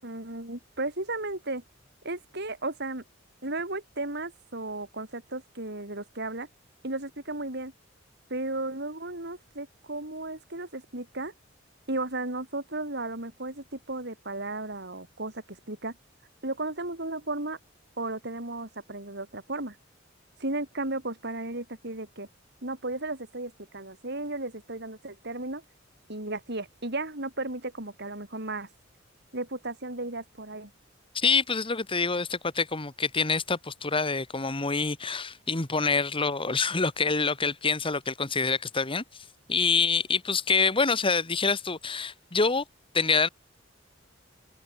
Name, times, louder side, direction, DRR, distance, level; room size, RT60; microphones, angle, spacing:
voice 1, 0.0-1.6 2.0-3.0 3.4-6.5 6.8-7.7 8.3-11.3 11.9-16.0 16.4-17.6 18.0-19.8 20.4-22.3 22.6-25.6 26.1-28.7 29.3-30.7, right 2 dB, 60° right, 7.9 m, -34 dB
voice 2, 31.1-39.0 39.5-42.6 42.9-43.3, left 4 dB, 25° left, 1.6 m, -26 dB
head